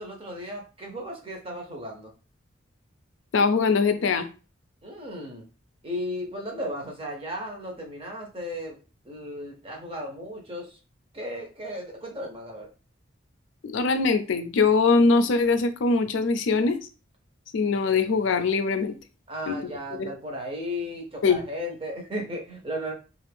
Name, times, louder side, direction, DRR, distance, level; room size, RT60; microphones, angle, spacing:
voice 1, 0.0-2.1 4.8-5.5 5.8-10.8 11.1-12.7 19.3-22.9, equal, 30° right, 1 dB, 0.7 m, -35 dB
voice 2, 3.3-4.3 13.6-16.8 17.5-19.0 19.5-19.7 20.0-20.1 21.2-21.4, left 4 dB, 75° left, 8 dB, 0.4 m, -22 dB
2.5 x 2.4 x 3.3 m, 0.34 s
head